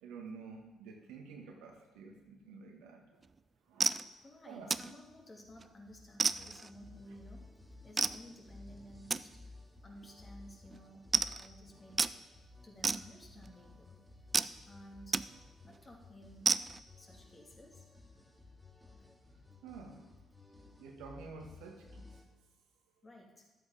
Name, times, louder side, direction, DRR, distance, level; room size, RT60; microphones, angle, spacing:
voice 1, 0.0-3.0 3.7-4.0 4.5-4.7 19.6-20.0 20.8-22.0, right 4 dB, 80° right, 2 dB, 1.6 m, -49 dB
sound 1, 3.2-3.4 3.8-4.1 4.7-5.0 5.4-5.7 6.2-6.7 8.0-8.2 9.1-9.2 9.9-10.1 10.3-10.4 10.7-10.8 11.1-11.5 12.0-12.1 12.8-13.5 14.3-14.5 15.1-15.3 15.6-15.8 16.4-16.8, right 4 dB, 35° right, 0.4 m, -31 dB
voice 2, 4.2-7.5 7.8-9.4 9.8-12.1 12.6-14.0 14.7-15.2 15.7-16.6 17.0-17.8 23.0-23.5, equal, 35° left, 0 dB, 2.7 m, -54 dB
sound 2, 4.6-22.2, left 3 dB, 5° left, 2.2 m, -57 dB
11.0 x 8.2 x 5.0 m, 1.1 s
hypercardioid pair, 50°, 0 cm